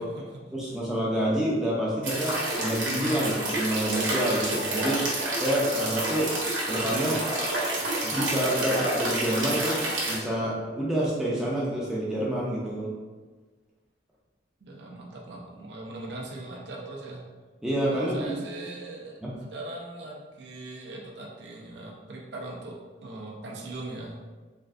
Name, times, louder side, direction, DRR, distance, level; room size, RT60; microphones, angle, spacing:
voice 1, 0.0-0.6 14.6-17.2 17.9-24.2, right 2 dB, 65° right, -2 dB, 0.5 m, -40 dB
voice 2, 0.5-5.0 5.4-6.3 6.7-7.2 8.0-9.8 10.1-12.9 17.6-18.3 19.2-19.3, right 1 dB, 5° right, -6 dB, 0.4 m, -28 dB
sound 1, 2.0-10.2, right 1 dB, 90° right, 0.9 m, -29 dB
3.3 x 2.5 x 2.4 m, 1.3 s
head